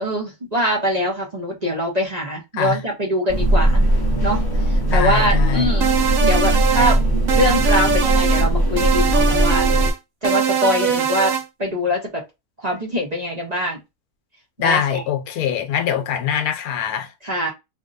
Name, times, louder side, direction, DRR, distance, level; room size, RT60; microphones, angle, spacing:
voice 1, 0.0-3.8 4.2-4.4 4.7-5.9 6.2-7.0 7.3-9.9 10.2-11.3 11.6-12.2 12.6-13.8 14.6-15.0 17.2-17.5, equal, 30° right, 0.9 m, -23 dB
sound 1, 3.3-9.9, right 1 dB, 20° left, 0.7 m, -19 dB
voice 2, 4.8-5.7 14.6-17.1, left 8 dB, 80° left, 1.1 m, -23 dB
sound 2, 5.8-7.0 7.3-8.5 8.8-10.0 10.2-11.4, right 7 dB, 65° right, 1.1 m, -21 dB
2.9 x 2.6 x 2.6 m
omnidirectional pair, 1.6 m